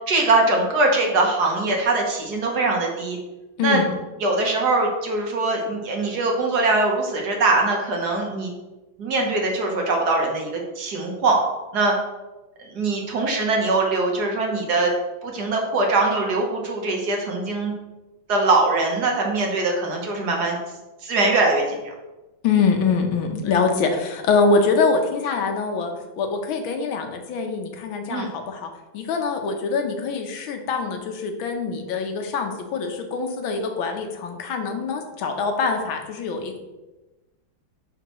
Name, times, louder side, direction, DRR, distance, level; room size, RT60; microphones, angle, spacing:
voice 1, 0.1-3.2 3.6-3.8 4.2-8.5 9.0-11.4 11.7-11.9 12.7-14.9 15.2-17.7 18.3-20.6 21.0-21.8 28.1-28.3, right 2 dB, 55° right, 1 dB, 1.6 m, -22 dB
voice 2, 22.4-36.6, left 4 dB, 85° left, 4 dB, 1.7 m, -24 dB
10.5 x 4.5 x 3.0 m, 1.1 s
omnidirectional pair, 2.2 m